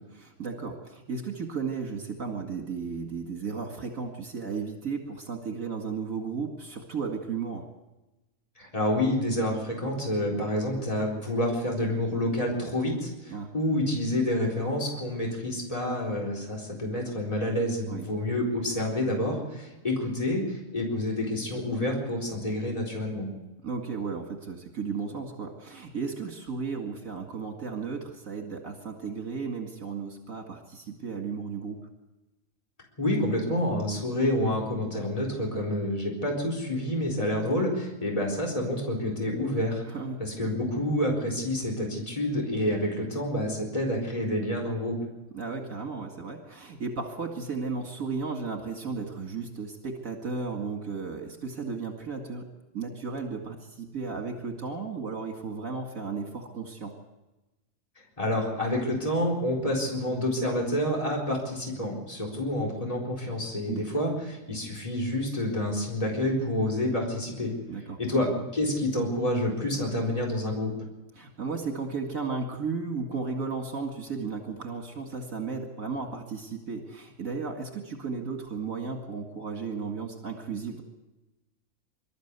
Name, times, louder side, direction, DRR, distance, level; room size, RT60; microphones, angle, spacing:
voice 1, 0.1-7.7 13.3-13.5 17.9-18.1 23.6-31.9 39.9-40.2 45.3-52.5 52.7-57.0 63.7-63.9 67.7-68.0 71.2-80.8, right 5 dB, 65° right, 2 dB, 2.5 m, -34 dB
voice 2, 8.6-23.3 33.0-39.8 40.2-45.0 58.2-67.5 68.0-70.7, left 1 dB, 25° left, -2 dB, 4.2 m, -28 dB
25.5 x 13.0 x 8.2 m, 1.0 s
omnidirectional pair, 1.5 m